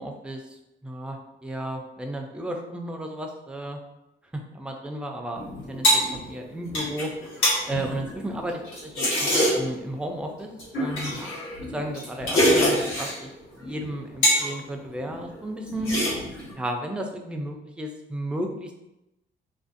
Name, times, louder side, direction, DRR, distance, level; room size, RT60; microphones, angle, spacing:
voice 1, 0.0-3.8 4.3-7.1 7.7-10.5 10.8-11.3 11.7-13.3 13.6-15.9 16.6-18.7, right 1 dB, 5° right, 2 dB, 0.3 m, -33 dB
sound 1, 5.3-9.8 10.6-13.2 13.6-14.5 14.8-15.3 15.7-16.5, equal, 85° left, 1.2 m, -25 dB
2.5 x 2.3 x 2.5 m, 0.92 s
cardioid pair, 90°, 20 cm